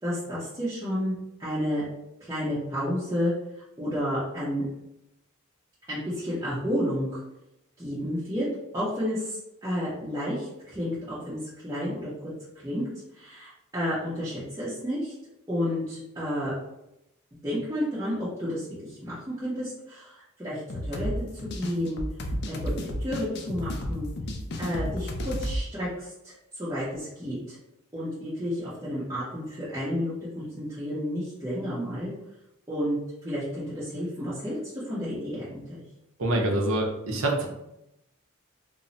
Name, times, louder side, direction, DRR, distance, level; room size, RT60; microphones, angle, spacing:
voice 1, 0.0-1.8 2.2-3.3 3.8-4.6 5.9-7.2 7.8-8.5 8.7-12.1 12.6-12.9 13.2-15.1 15.5-16.5 17.4-21.1 21.5-22.0 22.5-24.1 24.6-27.6 27.9-32.1 32.7-35.8, equal, 15° right, -12 dB, 0.7 m, -31 dB
sound 1, 20.7-25.6, equal, 50° left, 0.3 m, -32 dB
voice 2, 36.2-37.5, right 1 dB, 65° right, 0 dB, 0.6 m, -25 dB
2.2 x 2.0 x 3.8 m, 0.86 s
head